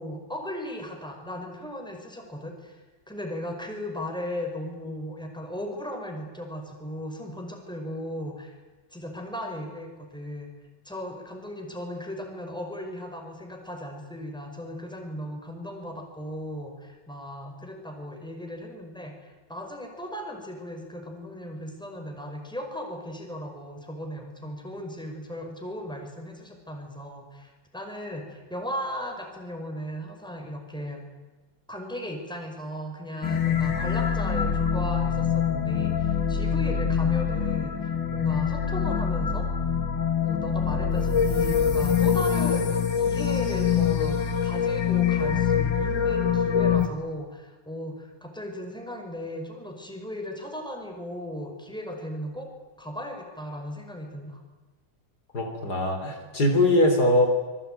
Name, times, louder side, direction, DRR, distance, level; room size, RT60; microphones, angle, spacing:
voice 1, 0.0-2.8 3.1-8.5 8.9-10.5 10.9-31.0 31.7-37.8 38.1-39.5 40.2-52.5 52.8-54.4, equal, ahead, 3 dB, 5.3 m, -36 dB
sound 1, 33.2-46.9, left 7 dB, 80° left, 2.7 m, -24 dB
voice 2, 55.3-57.3, left 1 dB, 60° left, 4 dB, 4.3 m, -22 dB
26.0 x 22.5 x 9.3 m, 1.3 s
omnidirectional pair, 2.0 m